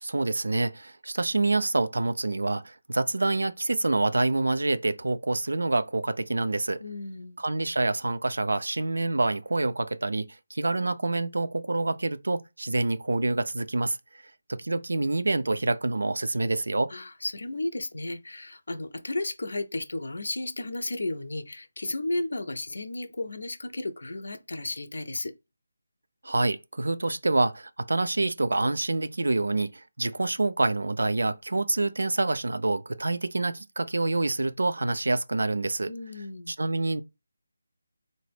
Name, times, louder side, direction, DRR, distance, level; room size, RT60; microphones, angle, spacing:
voice 1, 0.0-6.8 7.4-14.0 14.5-16.9 26.2-35.9 36.5-37.0, right 2 dB, 70° right, 0.3 m, -27 dB
voice 2, 6.8-7.4 16.9-25.3 35.9-36.5, left 2 dB, 65° left, 0.5 m, -33 dB
3.9 x 2.1 x 3.3 m
figure-of-eight pair, 155°, 0 cm